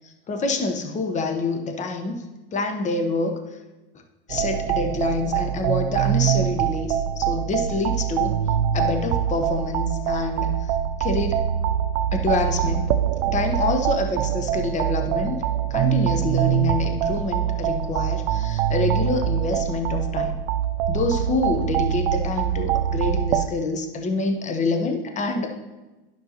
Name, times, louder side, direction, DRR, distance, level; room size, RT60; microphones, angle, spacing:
voice 1, 0.0-2.2 2.5-3.4 4.3-8.3 8.7-10.7 11.0-11.4 12.1-12.9 13.3-15.4 15.7-20.4 20.9-25.5, left 3 dB, 25° left, 5 dB, 1.0 m, -26 dB
sound 1, 4.3-23.5, right 10 dB, 70° right, 0.5 m, -24 dB
11.0 x 5.6 x 2.9 m, 1.1 s
hypercardioid pair, 100°, 29 cm